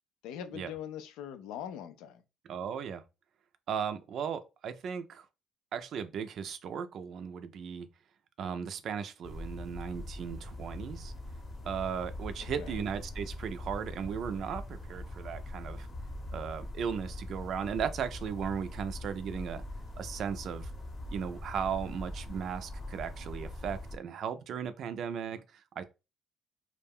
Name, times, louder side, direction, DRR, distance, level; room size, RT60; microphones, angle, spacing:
voice 1, 0.2-2.2 12.6-12.8, left 9 dB, 90° left, 0.4 m, -42 dB
voice 2, 2.5-3.0 3.7-5.3 5.7-7.9 8.4-11.1 11.6-15.9 16.3-19.6 20.0-20.7 21.1-25.8, right 7 dB, 60° right, 0.4 m, -36 dB
sound 1, 9.2-24.0, left 1 dB, 30° left, 0.8 m, -42 dB
2.4 x 2.1 x 3.4 m
cardioid pair, 105°, 0 cm